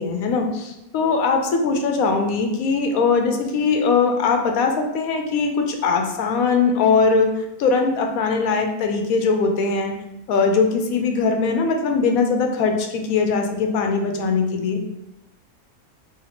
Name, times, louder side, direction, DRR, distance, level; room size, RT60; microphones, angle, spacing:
voice 1, 0.0-7.3 7.6-9.9 10.3-14.8, left 4 dB, 70° left, 3 dB, 1.0 m, -20 dB
3.2 x 2.9 x 4.1 m, 0.88 s
omnidirectional pair, 1.6 m